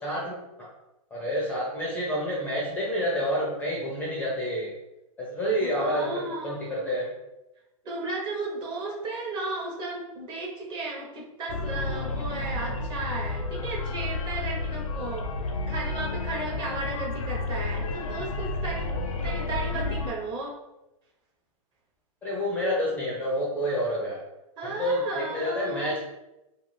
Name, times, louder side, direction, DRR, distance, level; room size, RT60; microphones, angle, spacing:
voice 1, 0.0-0.7 1.1-4.7 5.2-7.1 22.2-24.2 24.6-26.0, equal, 10° left, -4 dB, 0.4 m, -28 dB
voice 2, 5.6-6.9 7.8-18.9 19.2-20.5 24.6-26.0, right 2 dB, 25° right, -3 dB, 0.7 m, -34 dB
sound 1, 11.5-20.1, left 3 dB, 70° left, 0.5 m, -31 dB
2.4 x 2.3 x 3.1 m, 0.95 s
hypercardioid pair, 135°, 18 cm